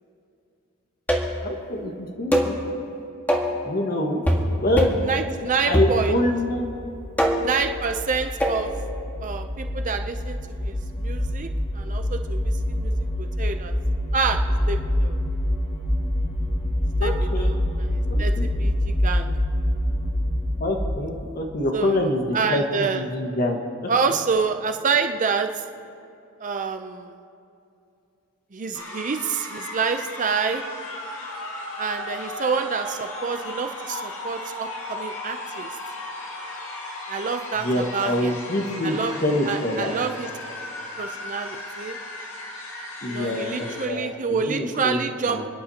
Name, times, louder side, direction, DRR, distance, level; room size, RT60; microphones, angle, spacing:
sound 1, 1.1-1.5 2.3-2.6 3.3-3.6 4.3-4.5 4.8-5.1 5.7-6.3 7.2-7.6 8.4-8.6, equal, 10° left, 1.6 m, -22 dB
voice 1, 1.4-2.5 3.6-4.2 4.6-4.9 5.7-6.6 17.0-17.5 18.1-18.4 20.6-22.2 22.5-23.6 37.6-39.9 43.0-45.0 45.3-45.4, left 1 dB, 45° left, 2 dB, 1.6 m, -25 dB
voice 2, 5.0-6.2 7.4-8.7 9.2-13.7 14.1-14.4 14.7-15.2 17.0-19.4 21.7-23.1 23.9-25.6 26.4-27.2 28.5-30.6 31.8-35.7 37.1-38.3 38.8-39.2 39.4-40.3 41.0-42.0 43.1-45.5, right 5 dB, 35° right, 6 dB, 0.5 m, -27 dB
sound 2, 6.0-21.3, left 1 dB, 25° left, 2.5 m, -26 dB
sound 3, 28.7-43.9, left 2 dB, 65° left, 2.3 m, -36 dB
29.5 x 10.5 x 2.9 m, 2.7 s
head